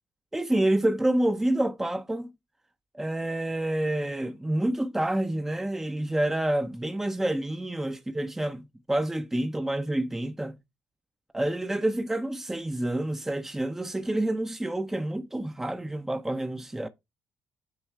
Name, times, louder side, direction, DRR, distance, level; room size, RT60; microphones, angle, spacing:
voice 1, 0.3-2.3 2.9-10.6 11.3-16.9, right 1 dB, 10° right, 0.6 m, -28 dB
8.0 x 3.1 x 4.6 m
supercardioid pair, 70°, 4 cm